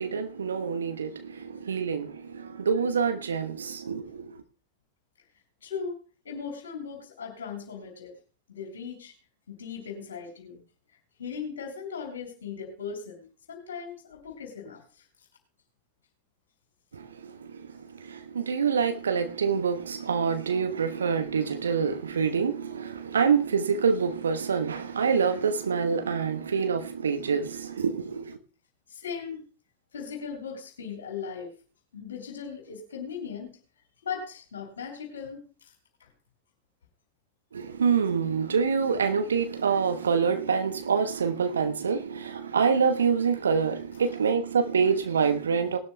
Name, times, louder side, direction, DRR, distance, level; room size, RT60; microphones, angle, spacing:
voice 1, 0.0-4.4 16.9-17.7 17.9-28.4 37.5-45.8, right 6 dB, 70° right, 1.2 m, -26 dB
voice 2, 5.6-6.0 6.2-8.1 8.5-9.1 9.5-10.6 11.2-14.8 28.9-29.4 29.9-31.5 31.9-33.6 34.0-35.7 36.0-36.1, left 6 dB, 65° left, 3.5 m, -38 dB
19.5 x 12.5 x 2.3 m
figure-of-eight pair, 90°, 0 cm